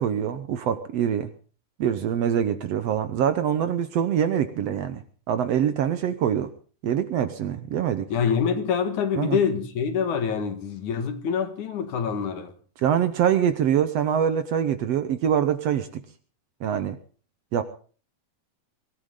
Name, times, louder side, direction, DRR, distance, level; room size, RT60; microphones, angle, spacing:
voice 1, 0.0-1.3 1.8-5.0 5.3-6.5 6.8-8.1 9.1-9.4 12.8-16.0 16.6-17.0 17.5-17.6, right 9 dB, 65° right, 1.8 m, -24 dB
voice 2, 8.1-12.5, left 7 dB, 70° left, 3.0 m, -25 dB
22.5 x 14.0 x 3.8 m
omnidirectional pair, 3.6 m